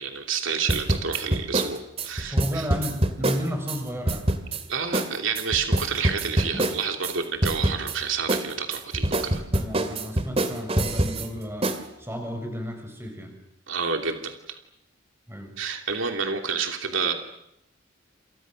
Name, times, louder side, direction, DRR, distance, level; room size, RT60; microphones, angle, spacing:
voice 1, 0.0-2.7 4.7-9.4 13.7-14.6 15.6-17.1, right 6 dB, 90° right, 4 dB, 2.9 m, -29 dB
sound 1, 0.7-3.8 4.1-4.6 4.9-5.1 5.4-7.1 7.4-8.0 8.3-11.3 11.6-11.8, right 1 dB, 30° right, 2.3 m, -25 dB
voice 2, 2.2-4.3 6.5-6.7 9.5-11.7 12.0-13.4 15.3-15.6, equal, 15° right, 4 dB, 6.5 m, -33 dB
28.5 x 28.5 x 6.4 m, 0.79 s
head